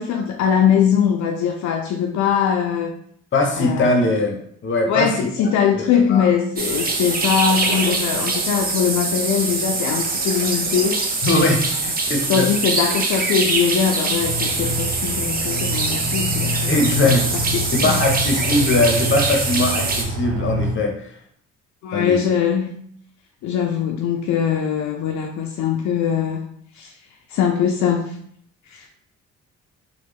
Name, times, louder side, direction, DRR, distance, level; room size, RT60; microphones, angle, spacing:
voice 1, 0.0-2.9 3.6-3.9 4.9-11.0 12.3-17.2 17.5-18.0 21.8-22.7 23.4-26.5 26.8-26.9 27.3-28.2 28.7-28.9, left 7 dB, 70° left, 3 dB, 0.4 m, -21 dB
voice 2, 3.3-4.4 4.6-6.3 11.2-12.5 16.7-17.3 17.7-20.9 21.9-22.2, left 2 dB, 40° left, 3 dB, 0.8 m, -20 dB
sound 1, 6.6-20.0, right 3 dB, 30° right, 0.6 m, -23 dB
Aircraft, 14.2-20.7, equal, 80° right, 0.8 m, -27 dB
3.1 x 2.2 x 3.4 m, 0.64 s
cardioid pair, 90°, 30 cm